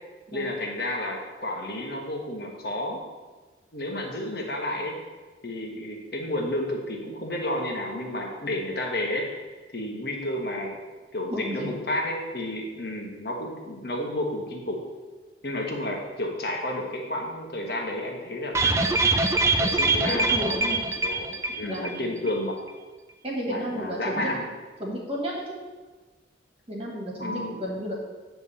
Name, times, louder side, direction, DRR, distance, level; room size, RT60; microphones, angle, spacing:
voice 1, 0.3-3.0 3.7-5.0 5.4-9.3 9.7-10.8 11.1-14.8 15.4-18.9 19.6-20.7 21.0-21.3 21.5-22.6 23.5-24.5 27.2-27.6, left 1 dB, 60° left, 1 dB, 1.4 m, -31 dB
voice 2, 11.3-11.7 20.1-20.8 21.6-22.2 23.2-24.3 24.8-25.6 26.7-27.9, equal, 30° right, -3 dB, 1.7 m, -32 dB
sound 1, 18.5-22.0 22.3-22.4 22.7-22.8, right 3 dB, 15° right, 0.4 m, -23 dB
9.3 x 3.5 x 6.9 m, 1.3 s
head